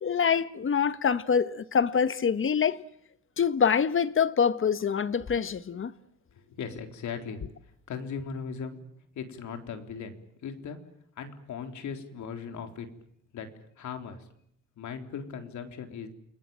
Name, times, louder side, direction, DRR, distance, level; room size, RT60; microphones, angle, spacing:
voice 1, 0.0-2.8 3.4-5.9, left 7 dB, 45° left, 1.5 m, -25 dB
voice 2, 6.3-7.4 7.9-8.8 9.1-10.8 11.2-12.9 13.3-13.5 13.8-14.3 14.8-16.1, left 6 dB, 70° left, 3.9 m, -38 dB
29.0 x 20.5 x 9.0 m
cardioid pair, 90°, 30 cm